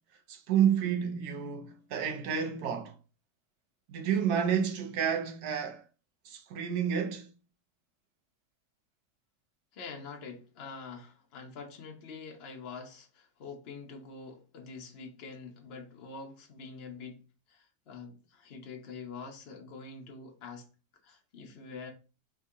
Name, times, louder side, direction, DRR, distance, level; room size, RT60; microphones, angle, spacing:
voice 1, 0.3-2.9 3.9-5.8 6.2-7.3, right 8 dB, 90° right, 1.3 m, -30 dB
voice 2, 9.7-17.2 17.5-20.7 21.0-21.9, left 4 dB, 50° left, 1.0 m, -45 dB
3.6 x 2.7 x 4.7 m
omnidirectional pair, 1.6 m